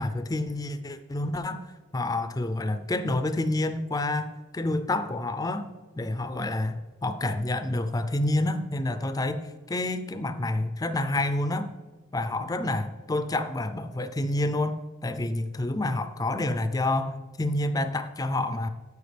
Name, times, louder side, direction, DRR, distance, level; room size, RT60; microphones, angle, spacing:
voice 1, 0.0-1.6 1.9-4.3 4.5-5.7 6.0-11.7 12.1-18.7, left 2 dB, 20° left, 10 dB, 0.4 m, -28 dB
13.0 x 4.7 x 3.4 m, 1.3 s
head